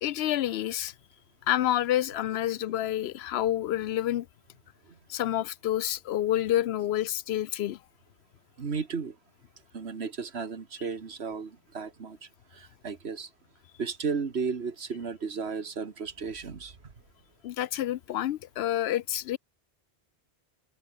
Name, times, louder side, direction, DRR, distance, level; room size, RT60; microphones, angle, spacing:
voice 1, 0.0-0.9 1.5-4.3 5.1-7.8 17.4-19.4, left 12 dB, 80° left, 0.8 m, -28 dB
voice 2, 8.6-9.2 9.7-13.3 13.8-16.8, right 5 dB, 85° right, 1.9 m, -34 dB
omnidirectional pair, 1.1 m